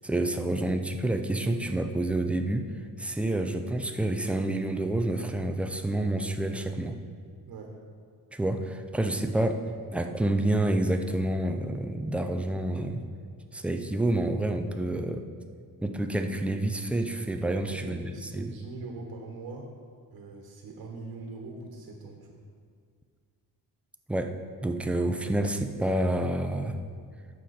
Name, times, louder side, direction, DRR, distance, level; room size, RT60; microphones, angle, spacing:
voice 1, 0.0-2.7 3.0-7.0 8.3-9.6 9.9-13.0 13.5-15.2 15.8-18.5 24.1-24.3 24.6-26.8, right 1 dB, 5° right, 5 dB, 0.4 m, -28 dB
voice 2, 17.6-19.7 20.1-22.4, right 3 dB, 70° right, 1 dB, 1.4 m, -42 dB
11.5 x 7.6 x 4.3 m, 2.1 s
cardioid pair, 145°, 38 cm